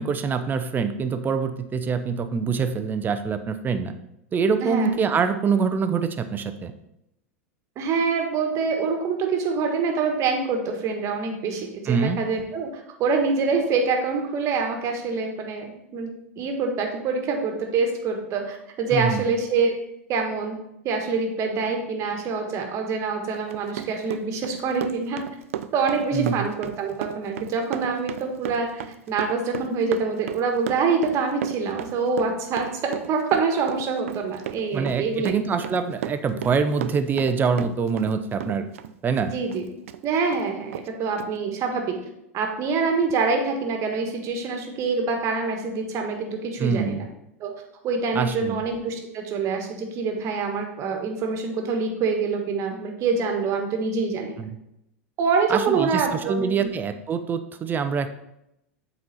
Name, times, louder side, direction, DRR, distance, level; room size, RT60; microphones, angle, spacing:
voice 1, 0.0-3.9 4.3-6.7 11.9-12.2 18.9-19.2 26.1-26.5 34.7-38.7 39.0-39.3 46.6-47.1 48.1-48.6 54.4-54.5 55.5-58.1, right 5 dB, 25° right, 9 dB, 0.7 m, -25 dB
voice 2, 4.6-4.9 7.7-19.7 20.1-20.6 20.8-25.2 25.7-35.7 39.3-39.6 40.0-42.0 42.3-47.0 47.4-47.5 47.8-54.4 55.2-56.7, right 4 dB, 45° right, 3 dB, 1.5 m, -25 dB
Run, 23.3-38.1 38.4-40.0 40.3-40.4 40.7-40.9 41.2-41.3, right 10 dB, 75° right, 0.4 m, -34 dB
7.6 x 4.2 x 4.2 m, 0.82 s
hypercardioid pair, 95°, 7 cm